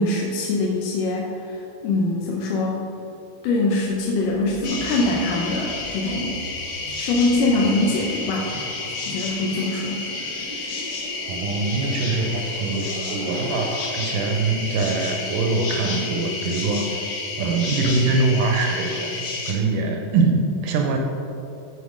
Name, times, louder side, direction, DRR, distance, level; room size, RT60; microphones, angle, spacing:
voice 1, 0.0-2.8 3.4-6.4 7.0-8.5 9.1-10.0, left 2 dB, 75° left, -2 dB, 2.1 m, -23 dB
sound 1, 3.8-13.9, equal, 40° left, 0.9 m, -41 dB
sound 2, 4.6-19.5, left 3 dB, 90° left, 1.0 m, -31 dB
voice 2, 11.3-17.0 17.4-19.1 19.5-21.0, right 3 dB, 80° right, 3 dB, 2.0 m, -23 dB
13.5 x 4.8 x 5.0 m, 3.0 s
omnidirectional pair, 4.3 m